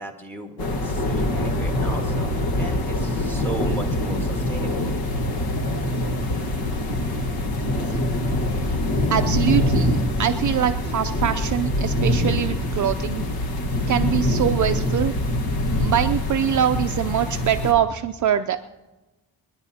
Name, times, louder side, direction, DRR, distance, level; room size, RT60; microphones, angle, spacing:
voice 1, 0.0-2.3 2.6-4.9, right 2 dB, 5° left, 3 dB, 1.7 m, -35 dB
sound 1, 0.6-17.7, left 1 dB, 65° left, 1.5 m, -24 dB
voice 2, 9.1-9.9 10.2-13.3 13.9-15.1 15.8-18.6, right 10 dB, 50° right, 8 dB, 0.5 m, -23 dB
30.0 x 10.5 x 2.8 m, 1.1 s
cardioid pair, 135°, 40 cm